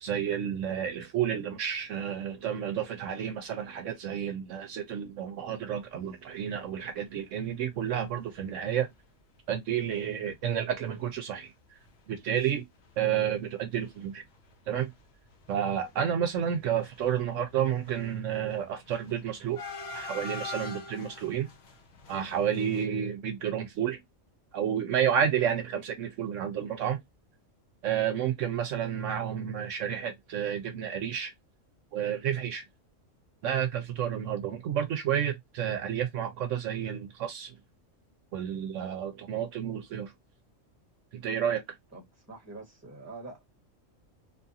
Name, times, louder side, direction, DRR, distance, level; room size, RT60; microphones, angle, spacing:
voice 1, 0.0-8.9 9.5-11.5 12.1-12.6 13.0-14.2 14.7-14.9 15.5-19.6 19.9-21.5 22.1-24.0 24.5-27.0 27.8-31.3 31.9-32.6 33.4-37.5 38.3-40.1 41.1-41.6, right 9 dB, 75° right, 0.9 m, -30 dB
sound 1, 6.9-7.1 7.6-7.7 7.9-8.0 8.8-8.9 9.3-9.5 9.8-9.9 10.3-12.5 12.8-13.5 13.8-22.9, left 3 dB, 60° left, 0.9 m, -45 dB
voice 2, 41.9-43.4, right 3 dB, 15° right, 1.1 m, -46 dB
2.7 x 2.4 x 2.6 m
omnidirectional pair, 1.4 m